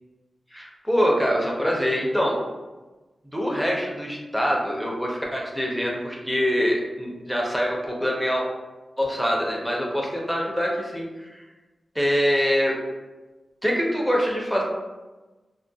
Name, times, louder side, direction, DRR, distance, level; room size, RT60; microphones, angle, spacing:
voice 1, 0.5-2.4 3.3-8.4 9.0-11.4 12.0-12.8 13.6-14.6, equal, ahead, -2 dB, 0.5 m, -24 dB
2.2 x 2.1 x 2.6 m, 1.2 s
wide cardioid pair, 105°, 0 cm